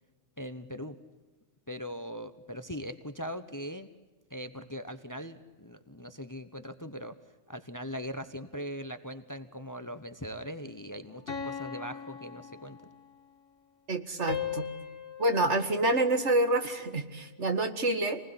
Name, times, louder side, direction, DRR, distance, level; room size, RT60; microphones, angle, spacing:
voice 1, 0.4-1.0 1.7-3.9 4.3-7.2 7.5-12.8, equal, 15° left, 11 dB, 1.1 m, -40 dB
sound 1, 11.3-13.2 14.3-16.7, left 8 dB, 50° left, 2.1 m, -39 dB
voice 2, 13.9-14.7 15.2-18.2, right 2 dB, 65° right, 7 dB, 2.4 m, -27 dB
28.0 x 20.0 x 10.0 m, 1.2 s
omnidirectional pair, 1.3 m